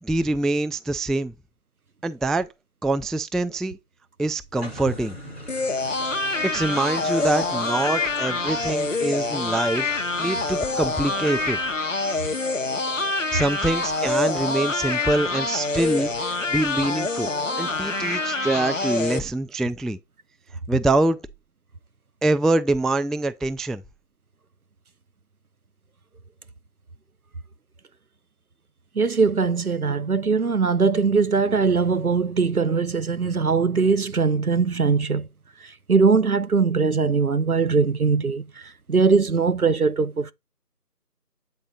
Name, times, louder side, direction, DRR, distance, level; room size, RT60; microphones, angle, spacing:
voice 1, 0.0-1.3 2.0-2.5 2.8-3.8 4.2-5.2 6.4-11.6 13.3-17.3 17.6-20.0 20.7-21.2 22.2-23.8, right 2 dB, ahead, 0.3 m, -25 dB
sound 1, 4.5-11.8, equal, 40° right, 2.3 m, -43 dB
sound 2, 5.5-19.2, left 3 dB, 55° left, 0.6 m, -26 dB
voice 2, 29.0-35.3 35.6-38.5 38.9-40.3, right 5 dB, 65° right, 0.7 m, -21 dB
8.6 x 3.8 x 4.0 m
figure-of-eight pair, 175°, 47 cm